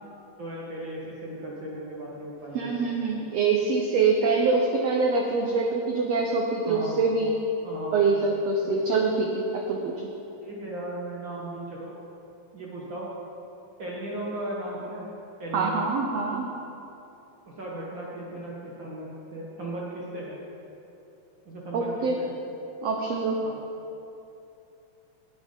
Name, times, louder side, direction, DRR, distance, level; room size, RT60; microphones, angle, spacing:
voice 1, 0.4-3.2 6.6-7.0 7.6-8.0 8.6-8.8 10.4-11.9 12.5-13.1 13.8-15.1 15.4-15.8 17.6-20.4 21.4-22.3 23.4-23.6, right 1 dB, 60° right, -5 dB, 1.3 m, -36 dB
voice 2, 2.5-7.3 7.9-9.9 15.5-16.5 21.7-22.2 22.8-23.4, right 4 dB, 80° right, 1 dB, 1.5 m, -24 dB
9.2 x 9.1 x 5.1 m, 2.9 s
omnidirectional pair, 3.7 m